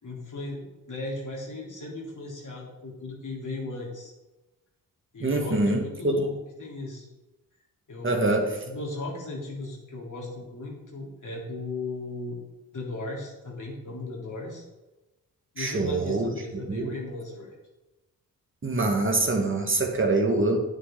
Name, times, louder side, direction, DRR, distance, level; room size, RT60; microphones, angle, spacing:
voice 1, 0.0-4.1 5.1-6.3 6.6-7.1 7.9-8.1 8.7-12.4 12.7-14.6 15.5-17.5, left 2 dB, 55° left, -2 dB, 3.4 m, -36 dB
voice 2, 5.2-6.3 8.0-8.6 15.6-16.9 18.6-20.6, right 2 dB, 35° right, 2 dB, 1.7 m, -25 dB
9.5 x 9.4 x 3.9 m, 1.0 s
cardioid pair, 85°, 37 cm